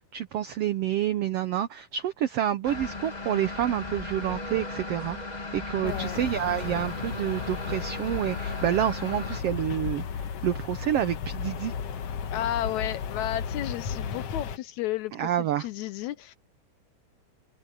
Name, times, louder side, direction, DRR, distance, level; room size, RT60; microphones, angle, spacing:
voice 1, 0.1-5.2 5.5-11.7 15.2-15.7, right 11 dB, 85° right, 1.3 m, -28 dB
sound 1, 2.6-9.4, left 2 dB, 15° left, 1.5 m, -37 dB
voice 2, 5.8-6.2 12.3-15.1 15.4-16.4, left 13 dB, 75° left, 1.8 m, -32 dB
sound 2, 5.8-14.6, left 7 dB, 60° left, 2.0 m, -34 dB
omnidirectional pair, 3.7 m